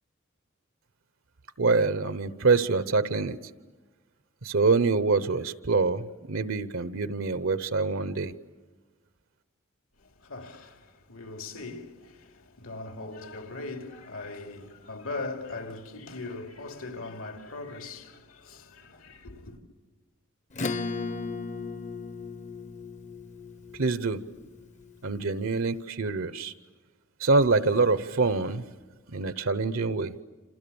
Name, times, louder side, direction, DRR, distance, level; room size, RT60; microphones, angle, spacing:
voice 1, 1.6-3.4 4.4-8.3 23.8-24.2 25.0-26.5 27.2-28.6 29.1-30.1, right 3 dB, 70° right, 0.9 m, -25 dB
voice 2, 10.0-19.6, left 3 dB, 80° left, 2.9 m, -40 dB
Acoustic guitar / Strum, 20.5-25.5, left 4 dB, 35° left, 0.8 m, -36 dB
29.0 x 27.5 x 7.0 m
head